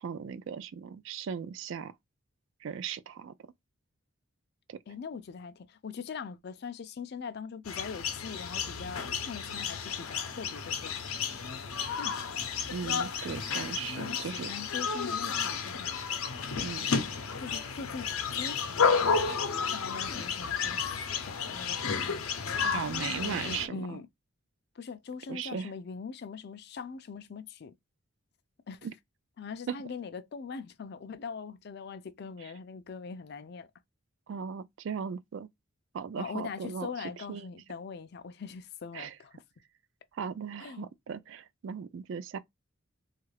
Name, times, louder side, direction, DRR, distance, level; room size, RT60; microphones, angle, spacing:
voice 1, 0.0-1.9 2.6-3.3 4.7-4.8 12.7-14.5 16.6-17.0 22.6-24.0 25.3-25.7 28.8-28.9 29.7-29.8 34.3-35.5 35.9-37.5 38.9-39.1 40.2-42.4, right 7 dB, 60° right, 0.3 m, -37 dB
voice 2, 4.9-11.2 12.0-12.2 14.0-16.0 17.4-19.1 19.7-22.9 23.2-24.1 24.8-27.7 28.7-28.8 29.4-33.7 36.2-39.4 40.6-40.9, left 5 dB, 50° left, 0.4 m, -42 dB
sound 1, 7.7-23.7, left 6 dB, 85° left, 0.7 m, -32 dB
3.1 x 2.4 x 3.1 m
head